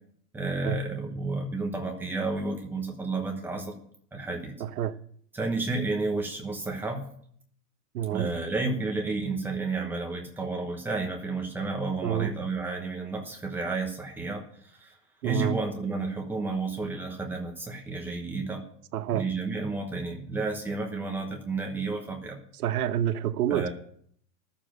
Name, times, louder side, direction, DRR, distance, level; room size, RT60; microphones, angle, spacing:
voice 1, 0.3-3.7 4.1-4.6 5.3-7.0 8.1-14.4 14.7-14.9 15.2-18.6 19.1-22.4 23.5-23.7, right 3 dB, 5° right, 1.0 m, -31 dB
voice 2, 4.6-5.0 7.9-8.3 12.0-12.3 15.2-15.6 18.9-19.2 22.6-23.7, right 11 dB, 65° right, 1.0 m, -28 dB
12.5 x 7.1 x 7.7 m
supercardioid pair, 165°, 48 cm